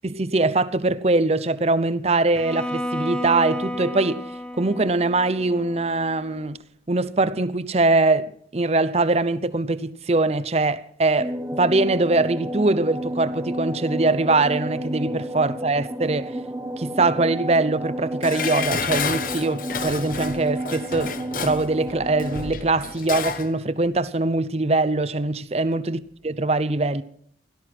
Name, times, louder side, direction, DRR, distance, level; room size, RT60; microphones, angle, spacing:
voice 1, 0.0-4.3 4.6-6.6 6.9-16.4 16.8-21.1 21.4-27.0, right 2 dB, 35° right, 0.7 m, -22 dB
Bowed string instrument, 2.3-6.4, equal, 5° left, 1.0 m, -32 dB
sound 1, 11.2-22.5, right 1 dB, 15° right, 1.0 m, -31 dB
Dishes pots and pans, 18.2-23.5 23.8-23.9, left 5 dB, 50° left, 1.0 m, -30 dB
17.0 x 13.0 x 6.1 m
head